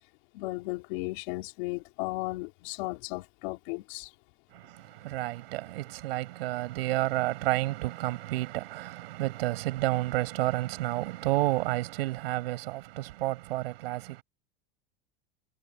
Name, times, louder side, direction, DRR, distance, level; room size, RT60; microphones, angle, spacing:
voice 1, 0.3-4.1, left 22 dB, 60° left, 3.3 m, -35 dB
voice 2, 4.5-14.2, right 17 dB, 80° right, 6.0 m, -30 dB
supercardioid pair, 150°, 29 cm